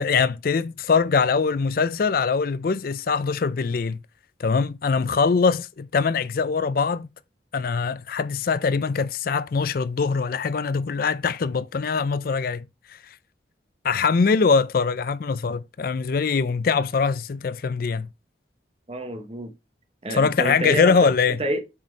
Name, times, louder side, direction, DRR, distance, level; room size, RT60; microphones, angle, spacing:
voice 1, 0.0-4.0 4.4-7.1 7.5-12.6 13.8-18.1 20.1-21.4, left 5 dB, 50° left, 0.4 m, -22 dB
voice 2, 18.9-19.5 20.0-21.0 21.4-21.8, right 1 dB, 30° right, 1.0 m, -29 dB
6.1 x 4.3 x 5.2 m
head